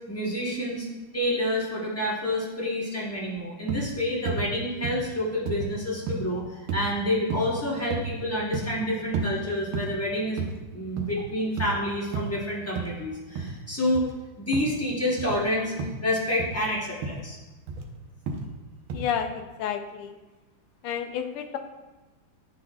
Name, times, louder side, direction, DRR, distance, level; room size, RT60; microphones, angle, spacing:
voice 1, 0.1-0.9 1.1-6.4 6.7-10.4 10.7-14.0 14.4-15.7 16.0-17.4, left 1 dB, 20° left, -6 dB, 0.3 m, -28 dB
sound 1, 3.7-3.9 4.3-4.5 4.8-5.1 5.5-5.7 6.1-6.3 6.7-6.9 7.3-7.6 7.9-8.2 8.5-8.7 9.1-9.3 9.7-10.0 10.4-10.6 10.8-11.2 11.6-11.8 12.1-12.3 12.8-12.9 13.4-13.6 13.9-14.1 14.5-14.8 15.2-15.4 15.8-16.0 16.4-16.6 17.0-17.2 17.7-17.9 18.3-18.5 18.9-19.1, right 5 dB, 80° right, 1.6 m, -32 dB
voice 2, 18.9-20.2 20.8-21.6, left 8 dB, 85° left, 6 dB, 1.5 m, -31 dB
10.5 x 3.9 x 2.3 m, 1.2 s
omnidirectional pair, 2.4 m